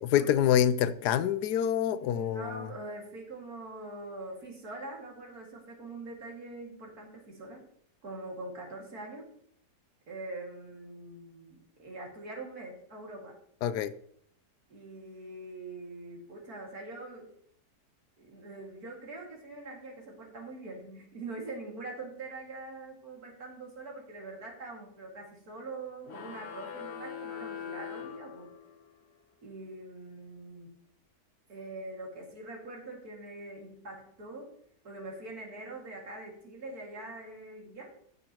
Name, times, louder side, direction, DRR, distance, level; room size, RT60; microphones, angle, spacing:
voice 1, 0.0-2.7 13.6-13.9, left 10 dB, 80° left, 1.1 m, -26 dB
voice 2, 2.0-7.6 8.0-9.3 10.1-13.4 14.7-17.3 18.2-28.5 29.4-30.7 31.5-34.5 34.8-37.9, right 2 dB, 65° right, 2.7 m, -43 dB
sound 1, 26.0-28.9, left 7 dB, 50° left, 1.0 m, -42 dB
15.0 x 6.7 x 2.9 m
omnidirectional pair, 1.7 m